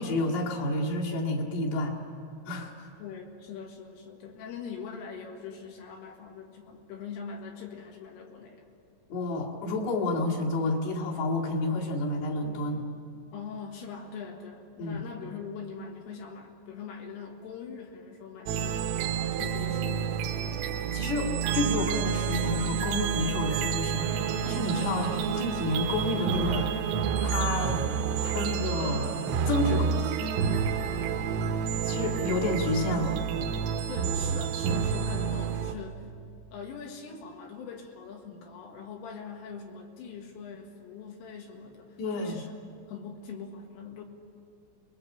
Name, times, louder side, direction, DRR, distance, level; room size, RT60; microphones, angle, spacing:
voice 1, 0.0-2.0 2.5-2.9 9.1-12.9 14.8-15.0 20.8-24.1 24.4-26.7 27.2-27.9 28.2-29.1 29.5-29.9 30.2-30.4 31.8-33.2 42.0-42.4, left 2 dB, 60° left, -3 dB, 4.0 m, -30 dB
voice 2, 3.0-8.7 13.3-20.2 24.9-25.2 29.6-30.0 33.9-36.1 36.5-42.5 42.9-44.0, left 6 dB, 75° left, 2 dB, 4.3 m, -42 dB
sound 1, 18.5-35.8, right 7 dB, 80° right, 3.5 m, -29 dB
26.5 x 21.5 x 7.5 m, 2.4 s
omnidirectional pair, 5.9 m